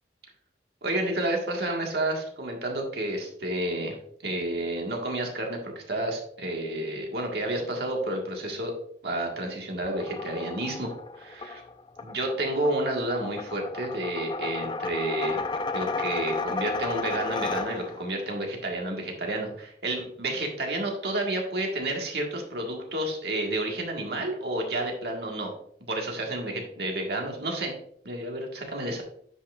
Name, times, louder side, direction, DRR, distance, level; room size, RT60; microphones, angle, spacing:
voice 1, 0.8-8.7 9.0-10.9 11.2-11.6 12.0-15.4 15.7-25.5 25.8-27.7 28.0-29.0, right 1 dB, 65° right, 1 dB, 1.7 m, -30 dB
sound 1, 9.8-18.1, left 3 dB, 25° left, 0.4 m, -33 dB
9.9 x 5.6 x 2.5 m, 0.65 s
head